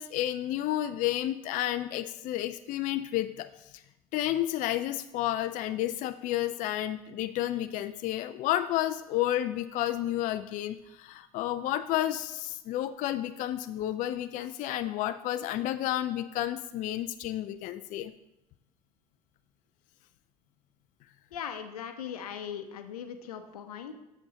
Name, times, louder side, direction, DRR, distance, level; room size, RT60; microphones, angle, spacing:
voice 1, 0.0-3.5 4.1-18.1, left 13 dB, 45° left, 11 dB, 0.4 m, -31 dB
voice 2, 21.3-23.9, left 8 dB, 80° left, 8 dB, 0.7 m, -39 dB
7.6 x 6.2 x 3.9 m, 0.94 s
hypercardioid pair, 70°, 19 cm